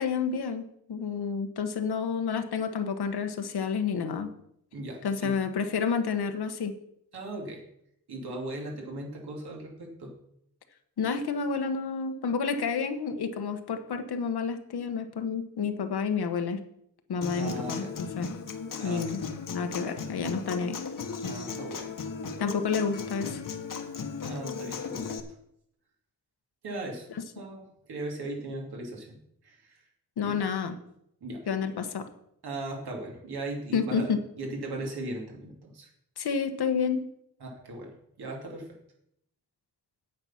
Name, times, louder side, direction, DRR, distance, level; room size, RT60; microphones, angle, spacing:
voice 1, 0.0-4.3 5.0-6.7 11.0-16.6 17.1-18.3 18.8-19.2 19.5-20.8 22.4-23.4 30.2-30.7 31.5-32.1 33.7-34.2 36.2-37.0, left 5 dB, 90° left, 8 dB, 1.2 m, -30 dB
voice 2, 4.7-5.4 7.1-7.6 8.1-10.1 17.3-17.9 18.8-19.2 21.2-21.9 24.2-25.2 26.6-27.1 27.3-27.6 27.9-29.8 30.2-30.3 31.2-31.5 32.4-35.9 37.4-38.7, right 2 dB, 85° right, 0 dB, 2.9 m, -38 dB
Human voice / Acoustic guitar, 17.2-25.2, left 5 dB, 60° left, 1.1 m, -36 dB
8.8 x 8.8 x 5.8 m, 0.74 s
wide cardioid pair, 160°, 37 cm